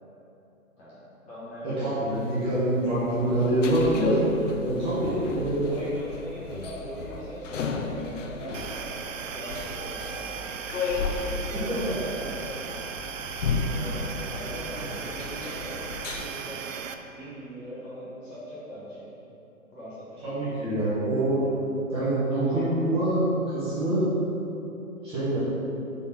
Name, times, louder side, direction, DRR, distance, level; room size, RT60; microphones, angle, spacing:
voice 1, 0.8-2.2 5.0-9.0 9.3-10.5 11.1-12.6 13.4-16.7 17.1-19.1 19.7-20.5, equal, 15° left, -11 dB, 1.3 m, -40 dB
voice 2, 1.6-4.2 4.6-5.6 11.8-11.9 20.2-21.4 21.9-23.2 23.5-24.1 25.0-25.4, right 1 dB, 15° right, -12 dB, 1.3 m, -25 dB
sound 1, 2.1-16.3, left 4 dB, 60° left, 0.6 m, -34 dB
sound 2, 8.5-16.9, right 6 dB, 65° right, 0.5 m, -37 dB
5.4 x 4.2 x 4.4 m, 3.0 s
figure-of-eight pair, 135°, 42 cm